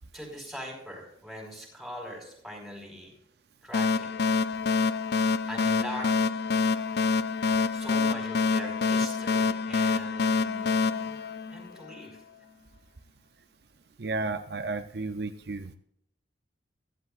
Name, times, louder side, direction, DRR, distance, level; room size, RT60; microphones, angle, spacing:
voice 1, 0.1-3.1 3.6-4.1 5.5-6.1 7.7-11.2 11.5-12.2, equal, ahead, -1 dB, 5.0 m, -41 dB
sound 1, 3.7-12.1, left 4 dB, 55° left, 0.4 m, -26 dB
voice 2, 14.0-15.8, right 3 dB, 60° right, 8 dB, 0.6 m, -33 dB
16.0 x 15.0 x 2.5 m, 0.77 s
head